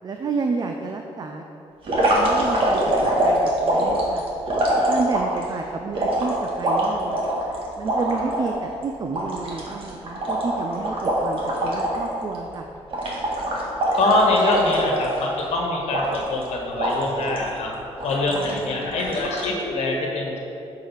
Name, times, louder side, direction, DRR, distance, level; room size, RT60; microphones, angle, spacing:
voice 1, 0.0-1.4 2.1-4.3 4.9-7.2 7.8-12.7 18.3-19.0, right 4 dB, 35° right, 3 dB, 0.5 m, -30 dB
sound 1, 1.8-5.4 6.0-8.5 8.8-8.9 9.1-12.1 12.3-12.6 12.9-15.4 15.9-16.4 16.8-17.5 18.0-18.6 19.0-19.5, right 1 dB, 55° right, 1.8 m, -23 dB
voice 2, 14.0-16.0 16.3-17.7 18.0-20.4, left 2 dB, 80° left, 0 dB, 1.4 m, -23 dB
8.4 x 4.9 x 5.8 m, 2.8 s
cardioid pair, 120°, 11 cm